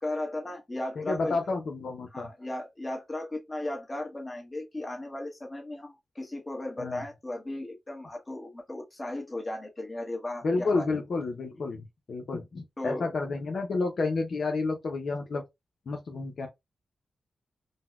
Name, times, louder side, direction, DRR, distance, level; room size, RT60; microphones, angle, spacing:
voice 1, 0.0-1.4 2.1-10.8 12.8-13.1, left 1 dB, 20° left, 1.1 m, -36 dB
voice 2, 1.0-2.3 6.8-7.0 10.4-15.4 15.9-16.5, left 3 dB, 65° left, 0.6 m, -30 dB
4.0 x 2.1 x 2.3 m
cardioid pair, 75°, 0 cm